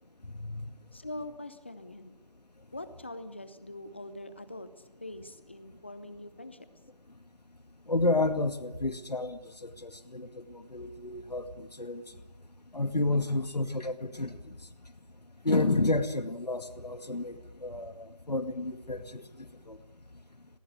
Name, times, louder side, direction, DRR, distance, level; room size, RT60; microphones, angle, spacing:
voice 1, 0.9-2.2 2.7-6.7, left 1 dB, 15° left, 13 dB, 0.7 m, -43 dB
voice 2, 7.9-12.0 12.7-14.4 15.4-19.8, left 2 dB, 80° left, 10 dB, 2.1 m, -31 dB
19.0 x 18.0 x 9.5 m, 1.0 s
figure-of-eight pair, 170°, 20 cm